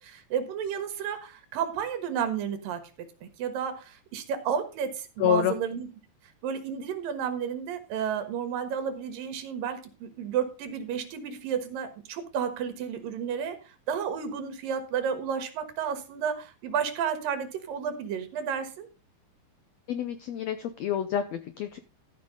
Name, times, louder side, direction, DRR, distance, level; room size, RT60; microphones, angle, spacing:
voice 1, 0.0-2.8 3.2-5.9 6.4-18.9, right 7 dB, 80° right, 8 dB, 3.1 m, -32 dB
voice 2, 5.2-5.5 19.9-21.8, left 9 dB, 85° left, 10 dB, 1.5 m, -28 dB
13.5 x 5.4 x 5.1 m, 0.33 s
omnidirectional pair, 4.0 m